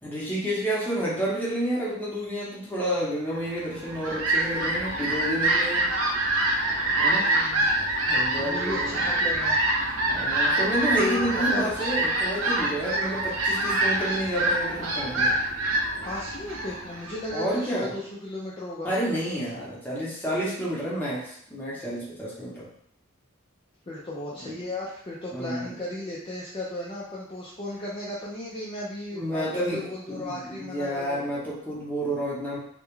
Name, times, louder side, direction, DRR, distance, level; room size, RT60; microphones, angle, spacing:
voice 1, 0.0-5.9 6.9-7.3 8.1-9.0 10.0-15.4 17.3-17.9 18.8-22.7 25.3-25.7 29.1-32.6, equal, 10° left, -7 dB, 0.8 m, -30 dB
Fowl, 3.6-17.6, right 1 dB, 85° right, 0.5 m, -26 dB
voice 2, 7.1-7.7 8.4-9.6 11.0-11.7 16.0-18.9 23.9-31.2, left 1 dB, 25° left, -6 dB, 0.3 m, -35 dB
2.3 x 2.1 x 3.0 m, 0.66 s
head